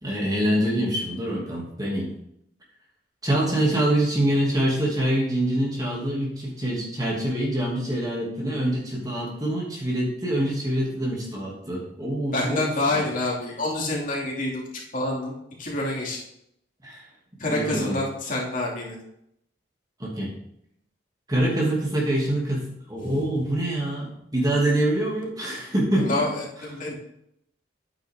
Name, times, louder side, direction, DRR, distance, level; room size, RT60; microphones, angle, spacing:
voice 1, 0.0-2.1 3.2-13.0 16.8-17.0 17.5-18.0 20.0-20.3 21.3-26.3, right 1 dB, 20° right, -3 dB, 2.9 m, -25 dB
voice 2, 12.3-14.7 14.9-16.2 17.4-19.0 23.0-23.2 26.0-26.9, left 2 dB, 45° left, -3 dB, 3.0 m, -27 dB
11.0 x 9.2 x 3.9 m, 0.74 s
head